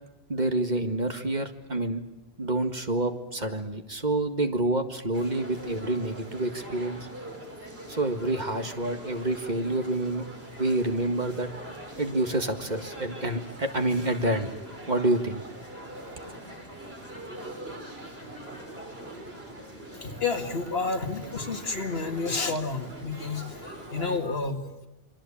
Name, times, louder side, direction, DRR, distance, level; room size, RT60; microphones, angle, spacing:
voice 1, 0.3-2.0 2.4-7.1 7.9-10.2 10.6-11.5 12.0-14.5 14.9-15.4, right 2 dB, 45° right, 6 dB, 2.0 m, -28 dB
sound 1, 5.1-24.2, right 1 dB, 75° right, 6.4 m, -42 dB
voice 2, 19.9-24.8, left 4 dB, 70° left, 5 dB, 2.3 m, -30 dB
27.5 x 24.0 x 8.7 m, 1.0 s
omnidirectional pair, 1.1 m